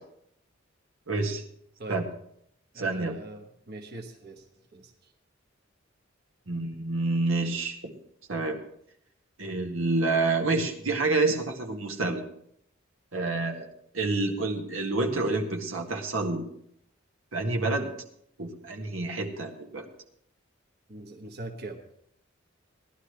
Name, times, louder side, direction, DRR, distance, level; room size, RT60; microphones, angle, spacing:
voice 1, 1.1-1.4 1.9-2.0 2.8-3.2 6.5-8.0 8.3-8.6 9.4-12.2 13.1-13.7 13.9-16.5 17.3-17.9 18.4-19.9, right 3 dB, 85° right, 2 dB, 1.8 m, -28 dB
voice 2, 2.7-4.5 4.7-5.1 20.9-21.8, right 2 dB, 55° right, 2 dB, 1.3 m, -42 dB
18.0 x 12.0 x 3.2 m, 0.70 s
head